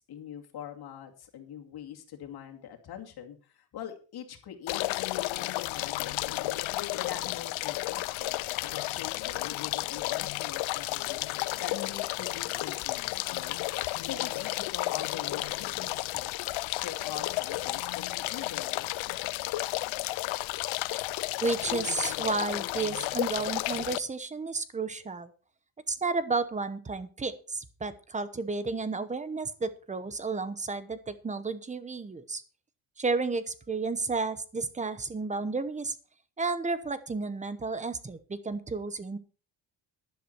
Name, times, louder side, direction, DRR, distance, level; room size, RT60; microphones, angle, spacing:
voice 1, 0.0-18.9, left 9 dB, 50° left, 3 dB, 2.6 m, -44 dB
sound 1, 4.7-24.0, left 19 dB, 80° left, 0.6 m, -32 dB
voice 2, 21.4-25.3 25.9-32.4 33.0-36.0 36.4-39.2, right 4 dB, 15° right, 13 dB, 0.9 m, -32 dB
12.0 x 11.5 x 4.5 m, 0.36 s
cardioid pair, 170°, 47 cm